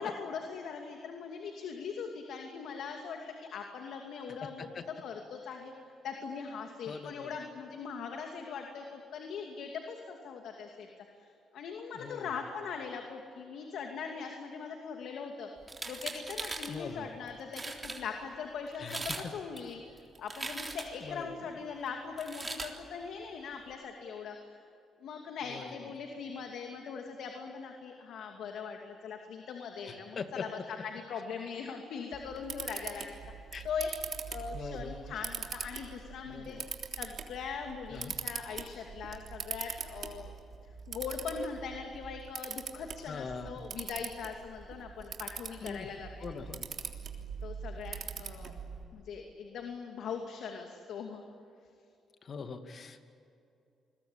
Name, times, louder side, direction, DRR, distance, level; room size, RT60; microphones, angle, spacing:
voice 1, 0.0-5.7 6.0-10.9 11.2-15.5 15.9-19.8 20.2-24.5 25.0-33.2 33.6-33.9 34.3-36.6 36.9-40.3 40.9-46.1 47.4-48.5 48.9-51.3, left 6 dB, 75° left, 3 dB, 2.5 m, -41 dB
voice 2, 6.9-7.3 11.9-12.3 16.7-17.1 18.8-19.3 21.0-21.5 25.5-25.9 29.9-30.5 33.5-33.7 34.5-35.1 36.3-36.6 37.9-38.1 43.1-43.6 45.6-45.9 46.2-46.7 52.2-53.0, left 5 dB, 50° left, 7 dB, 2.3 m, -42 dB
sound 1, 15.6-16.7 17.3-17.4 17.5-18.0 18.7-19.3 19.6-21.0 22.2-22.7, right 3 dB, 25° right, 3.7 m, -39 dB
Camera, 32.1-48.8, right 6 dB, 55° right, 3.3 m, -42 dB
29.0 x 21.5 x 8.8 m, 2.6 s
cardioid pair, 90°, 0 cm